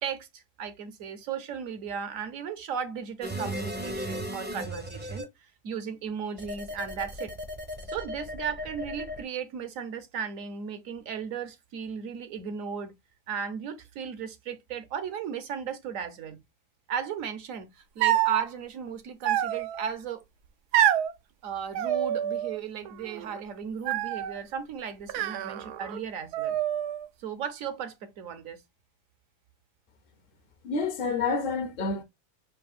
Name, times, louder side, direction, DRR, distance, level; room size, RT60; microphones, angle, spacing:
voice 1, 0.0-7.3 7.9-13.0 13.3-16.4 16.9-20.2 21.4-26.6 27.2-28.6, right 7 dB, 65° right, 1.0 m, -36 dB
sound 1, 3.2-5.2 6.4-9.2, equal, 10° right, 0.5 m, -36 dB
sound 2, 18.0-18.4 19.2-19.9 20.7-21.1 21.7-22.6 22.9-23.4 23.9-24.4 25.1-26.0 26.3-27.1, right 11 dB, 85° right, 1.1 m, -27 dB
voice 2, 30.6-32.0, left 4 dB, 50° left, 0.7 m, -28 dB
5.3 x 2.7 x 2.3 m
omnidirectional pair, 1.6 m